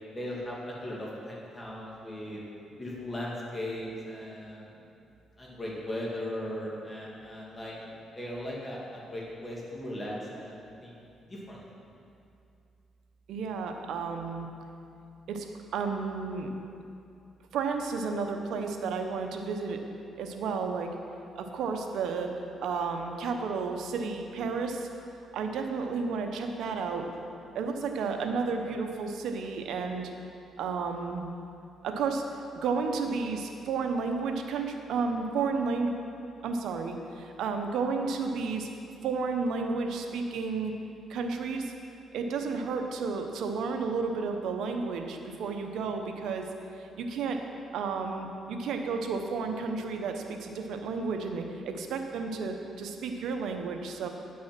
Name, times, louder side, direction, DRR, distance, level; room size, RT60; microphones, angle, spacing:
voice 1, 0.1-2.4 2.8-4.6 5.4-7.7 8.2-11.0 11.3-11.6, left 1 dB, 20° left, -5 dB, 2.1 m, -38 dB
voice 2, 13.3-14.5 15.3-15.5 15.7-16.5 17.5-19.8 20.2-20.9 21.3-22.4 22.6-24.9 25.3-27.1 27.5-30.1 30.6-31.3 31.8-32.2 32.6-35.9 36.4-38.7 39.0-40.7 41.1-41.7 42.1-46.5 46.8-47.4 47.7-54.1, right 4 dB, 75° right, 4 dB, 0.9 m, -32 dB
9.6 x 6.0 x 6.0 m, 2.6 s
cardioid pair, 90°, 0 cm